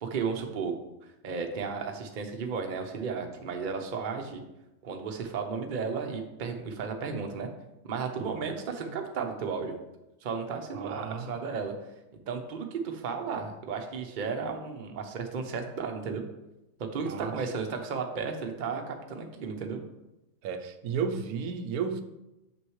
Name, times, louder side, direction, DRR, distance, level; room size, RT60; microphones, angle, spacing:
voice 1, 0.0-0.7 1.2-4.4 4.8-7.5 7.8-9.7 10.2-11.7 12.3-16.2 16.8-19.8, right 5 dB, 45° right, 3 dB, 0.7 m, -34 dB
voice 2, 8.2-8.5 10.7-11.4 17.0-17.3 20.4-22.0, right 6 dB, 90° right, 8 dB, 1.1 m, -33 dB
6.4 x 6.3 x 3.1 m, 0.95 s
omnidirectional pair, 1.5 m